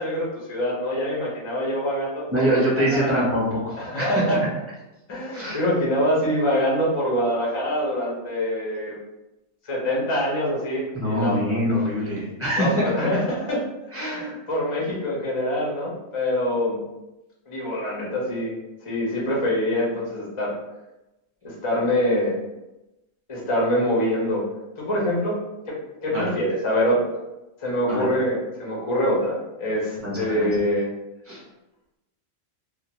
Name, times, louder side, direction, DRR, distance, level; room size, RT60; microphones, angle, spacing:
voice 1, 0.0-2.6 2.9-3.1 3.8-4.4 5.1-9.0 9.6-11.4 12.6-13.7 13.9-16.8 17.5-18.5 18.8-20.5 21.4-22.4 23.3-24.4 24.8-25.4 25.7-27.0 27.6-30.9, equal, 45° left, -4 dB, 0.4 m, -25 dB
voice 2, 2.3-4.2 5.3-5.7 10.9-12.8 13.9-14.2 26.1-26.2 27.9-28.0 30.0-30.5 31.3-31.4, equal, 15° right, -8 dB, 0.5 m, -24 dB
2.4 x 2.1 x 2.9 m, 0.99 s
omnidirectional pair, 1.5 m